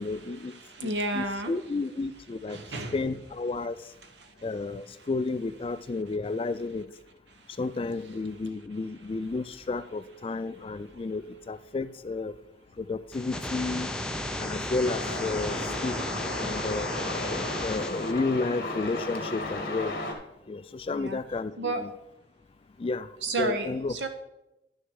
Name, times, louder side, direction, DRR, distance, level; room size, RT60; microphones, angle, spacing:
voice 1, 0.0-0.5 0.8-2.6 2.9-3.8 4.4-6.9 7.6-12.3 12.8-13.9 14.4-16.0 16.4-16.9 17.6-20.0 20.5-21.9 22.8-23.1 23.4-24.0, left 3 dB, 30° left, 14 dB, 0.3 m, -32 dB
voice 2, 0.5-1.5 2.5-2.9 4.2-4.3 20.9-21.2 21.6-21.9 23.2-24.1, right 2 dB, 80° right, 7 dB, 1.2 m, -31 dB
sound 1, 13.1-18.1, left 1 dB, 5° left, 0.7 m, -34 dB
Truck, 14.8-20.1, left 2 dB, 55° left, 1.8 m, -34 dB
11.0 x 6.4 x 4.8 m, 0.90 s
head